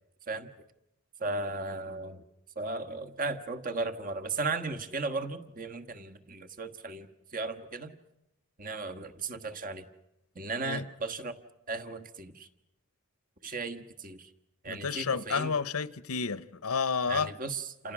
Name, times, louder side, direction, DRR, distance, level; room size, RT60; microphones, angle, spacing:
voice 1, 1.2-2.2 2.5-7.9 8.6-9.8 10.3-11.4 11.7-12.5 13.4-14.3 14.6-15.5 17.1-17.9, right 3 dB, 40° right, 1.4 m, -36 dB
voice 2, 14.7-17.3, left 5 dB, 85° left, 0.9 m, -31 dB
29.0 x 28.0 x 6.2 m
head